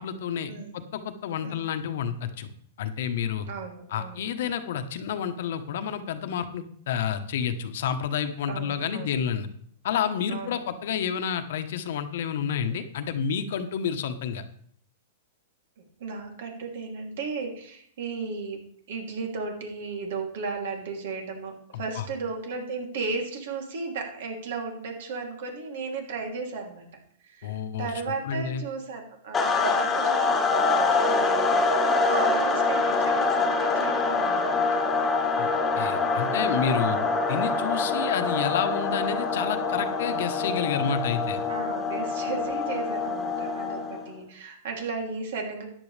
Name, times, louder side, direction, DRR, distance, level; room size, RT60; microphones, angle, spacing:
voice 1, 0.0-2.5 2.8-3.5 3.9-9.5 9.8-14.4 22.0-22.1 27.4-27.9 28.2-28.6 35.4-35.5 35.8-37.0 37.3-41.4, left 7 dB, 65° left, 9 dB, 1.1 m, -29 dB
voice 2, 3.5-4.2 8.5-9.1 10.3-10.6 16.0-18.6 18.9-34.8 36.1-37.1 41.5-45.6, right 4 dB, 70° right, 2 dB, 3.0 m, -35 dB
sound 1, 29.3-44.1, left 3 dB, 15° left, 1.5 m, -25 dB
13.5 x 9.8 x 3.4 m, 0.62 s
hypercardioid pair, 140°, 0 cm